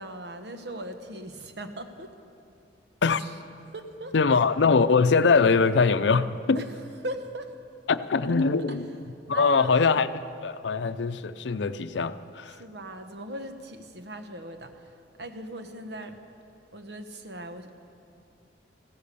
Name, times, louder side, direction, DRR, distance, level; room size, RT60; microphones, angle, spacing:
voice 1, 0.0-2.1 3.2-3.4 3.7-4.4 6.5-6.7 7.0-7.5 8.7-8.8 9.3-9.8 12.5-16.2 16.7-17.8, right 1 dB, 70° right, 7 dB, 1.2 m, -39 dB
voice 2, 4.1-6.6 7.9-8.9 9.3-10.1 10.4-12.5, left 4 dB, 90° left, 13 dB, 0.5 m, -22 dB
15.5 x 13.5 x 6.9 m, 2.6 s
head